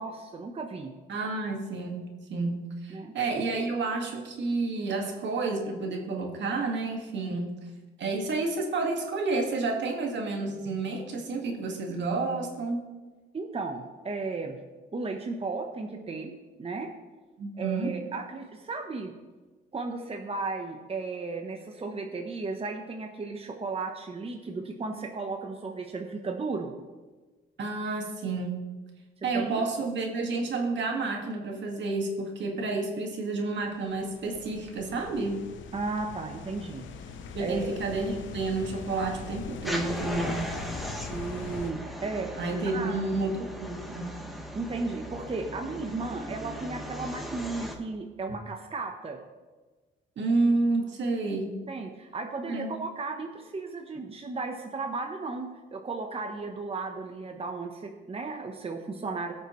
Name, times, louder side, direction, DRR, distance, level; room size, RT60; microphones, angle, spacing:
voice 1, 0.0-0.9 2.9-3.1 7.3-7.4 13.3-14.6 14.9-16.3 16.6-16.9 17.6-19.1 19.7-26.7 29.3-29.6 35.7-36.9 37.4-37.7 41.1-42.3 42.7-43.0 44.5-49.2 51.7-59.3, right 3 dB, 30° right, 3 dB, 1.0 m, -35 dB
voice 2, 1.1-7.6 8.0-12.9 17.4-17.9 27.6-28.6 29.2-35.4 37.3-40.5 42.4-44.1 50.2-51.6 52.5-52.7, right 3 dB, 65° right, 2 dB, 2.0 m, -30 dB
sound 1, 33.8-41.7, left 5 dB, 75° left, 0.9 m, -42 dB
sound 2, 39.6-47.7, equal, ahead, 1.5 m, -38 dB
18.5 x 6.6 x 3.2 m, 1.3 s
cardioid pair, 90°, 20 cm